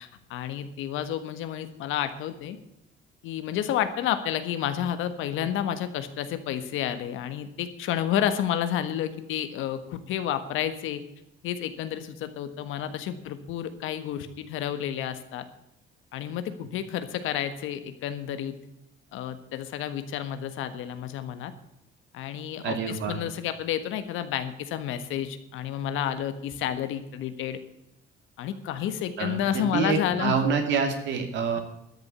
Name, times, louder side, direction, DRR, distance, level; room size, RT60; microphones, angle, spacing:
voice 1, 0.0-2.6 3.2-11.0 11.4-15.4 16.1-18.5 19.1-21.5 22.1-27.6 28.4-30.4, left 10 dB, 75° left, 10 dB, 1.5 m, -30 dB
voice 2, 22.6-23.2 29.2-31.6, right 5 dB, 60° right, 5 dB, 2.5 m, -27 dB
13.0 x 7.2 x 9.4 m, 0.83 s
cardioid pair, 160°, 21 cm